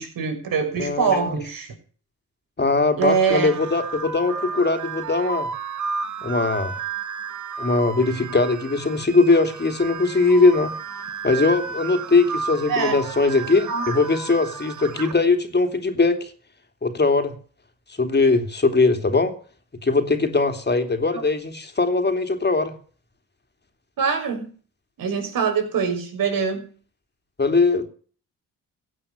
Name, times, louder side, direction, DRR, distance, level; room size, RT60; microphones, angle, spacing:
voice 1, 0.0-1.7 3.0-3.5 12.7-13.0 13.7-14.0 21.1-21.2 24.0-24.5 25.0-26.6, right 5 dB, 75° right, 5 dB, 6.4 m, -23 dB
voice 2, 0.8-1.4 2.6-5.5 6.2-6.7 7.6-10.7 11.2-16.3 16.8-17.3 18.0-19.3 19.8-22.7 27.4-27.9, left 3 dB, 30° left, 8 dB, 3.1 m, -20 dB
sound 1, 3.0-15.1, right 5 dB, 60° right, 2.1 m, -33 dB
16.0 x 9.1 x 6.8 m, 0.42 s
cardioid pair, 75°, 34 cm